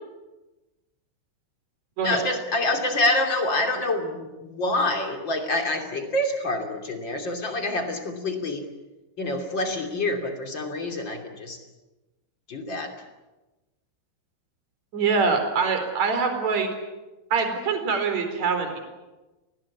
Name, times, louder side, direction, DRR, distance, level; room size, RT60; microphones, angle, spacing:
voice 1, 2.0-8.6 9.2-11.6 12.5-12.9, left 2 dB, 30° left, 4 dB, 2.6 m, -27 dB
voice 2, 14.9-16.7 17.3-18.8, right 5 dB, 35° right, 6 dB, 4.8 m, -24 dB
29.5 x 20.0 x 8.5 m, 1.1 s
omnidirectional pair, 5.7 m